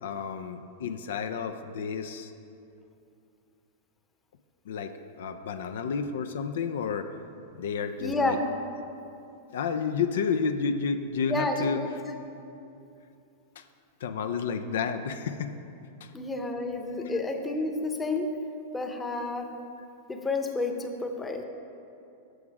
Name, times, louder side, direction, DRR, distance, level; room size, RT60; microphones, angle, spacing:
voice 1, 0.0-2.3 4.7-7.1 7.6-8.4 9.5-12.1 13.6-13.7 14.0-15.6 16.0-16.1 16.9-17.1, left 5 dB, 75° left, 8 dB, 0.4 m, -31 dB
voice 2, 8.0-8.5 11.3-11.9 16.1-18.3 18.7-19.5 20.1-21.4, left 2 dB, 15° left, 4 dB, 0.8 m, -30 dB
7.9 x 6.0 x 4.7 m, 2.7 s
hypercardioid pair, 110°, 0 cm